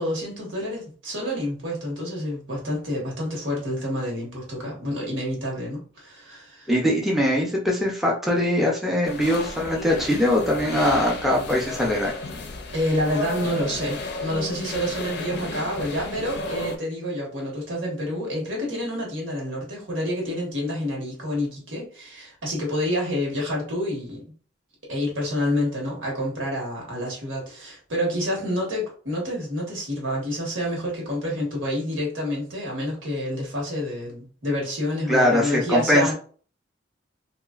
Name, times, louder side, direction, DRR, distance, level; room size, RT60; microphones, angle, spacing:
voice 1, 0.0-6.7 12.7-24.2 24.9-36.1, equal, 85° right, -2 dB, 1.3 m, -28 dB
voice 2, 6.7-12.2 35.1-36.1, left 1 dB, ahead, -3 dB, 0.5 m, -22 dB
sound 1, 9.0-16.8, left 3 dB, 60° left, 0.5 m, -33 dB
2.9 x 2.4 x 2.4 m, 0.42 s
head